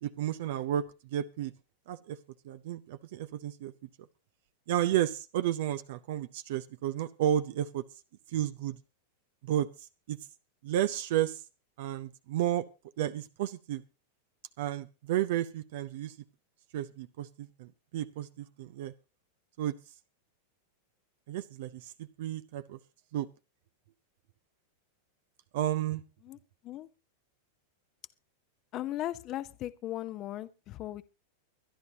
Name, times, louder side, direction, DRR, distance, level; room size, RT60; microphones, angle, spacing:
voice 1, 0.0-1.5 1.9-2.2 2.4-3.7 4.7-7.8 8.3-8.8 9.4-9.7 10.1-10.2 10.6-11.4 11.8-12.7 13.0-13.8 14.6-16.1 16.7-18.9 19.6-19.7 21.3-22.8 23.1-23.3 25.5-26.0, right 11 dB, 65° right, 0.6 m, -32 dB
voice 2, 28.7-31.0, left 13 dB, 40° left, 0.8 m, -37 dB
24.0 x 10.5 x 2.8 m
hypercardioid pair, 110°, 0 cm